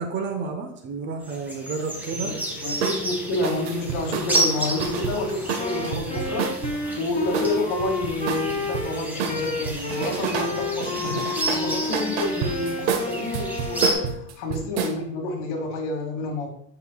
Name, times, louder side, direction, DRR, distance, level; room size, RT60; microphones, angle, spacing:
voice 1, 0.0-2.3, right 4 dB, 35° right, 5 dB, 1.0 m, -30 dB
sound 1, 1.2-13.9, right 1 dB, 5° right, 1.4 m, -31 dB
voice 2, 2.1-16.5, left 2 dB, 60° left, 2 dB, 2.1 m, -29 dB
sound 2, 2.8-3.0 3.4-6.8 7.3-8.9 9.2-10.5 10.8-15.0, right 7 dB, 90° right, 1.0 m, -29 dB
Wind instrument woodwind instrument, 5.6-14.2, left 2 dB, 20° left, 1.4 m, -31 dB
8.1 x 5.4 x 2.3 m, 0.68 s
supercardioid pair, 140°, 34 cm